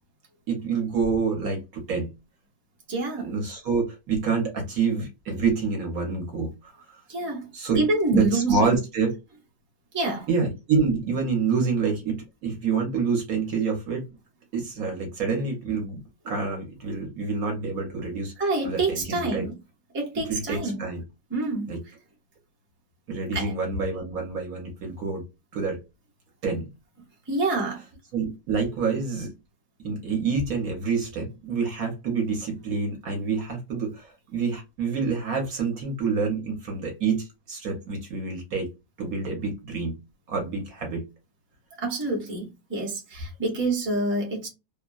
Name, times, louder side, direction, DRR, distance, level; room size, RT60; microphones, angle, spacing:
voice 1, 0.5-2.1 3.2-6.7 7.5-7.8 8.1-9.1 10.3-14.0 14.5-18.3 18.6-19.5 20.3-21.0 21.7-21.8 23.1-25.2 25.5-25.8 26.4-26.7 28.1-29.3 29.8-38.7 39.0-40.0 40.3-41.1, right 5 dB, 60° right, 1.2 m, -27 dB
voice 2, 2.9-3.3 7.1-7.5 7.8-8.8 9.9-10.3 18.4-19.6 19.9-20.8 21.3-21.7 23.3-23.5 27.3-27.8 41.8-44.5, right 2 dB, 10° right, 0.7 m, -27 dB
3.0 x 2.2 x 2.3 m
omnidirectional pair, 1.9 m